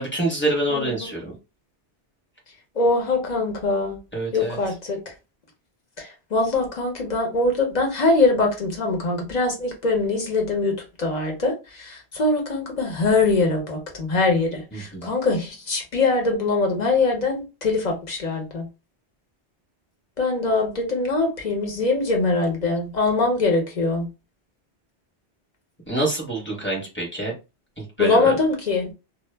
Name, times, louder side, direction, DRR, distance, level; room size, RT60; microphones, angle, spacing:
voice 1, 0.0-1.3 4.1-4.6 14.7-15.1 25.9-27.3 27.8-28.4, right 1 dB, 10° left, 0.8 m, -26 dB
voice 2, 2.8-4.0 4.3-5.1 6.0-18.7 20.2-24.1 28.0-28.9, left 3 dB, 45° left, 0.7 m, -23 dB
2.1 x 2.0 x 3.2 m
omnidirectional pair, 1.1 m